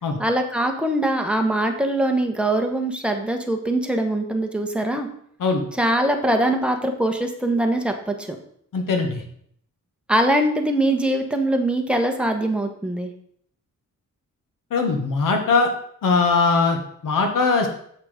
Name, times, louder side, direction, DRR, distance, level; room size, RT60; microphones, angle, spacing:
voice 1, 0.2-5.1 5.8-8.4 10.1-13.1, right 1 dB, 5° right, 3 dB, 1.1 m, -22 dB
voice 2, 8.7-9.2 14.7-15.7 16.0-17.7, left 4 dB, 80° left, 4 dB, 1.6 m, -20 dB
7.3 x 5.9 x 5.1 m, 0.66 s
wide cardioid pair, 120°, 32 cm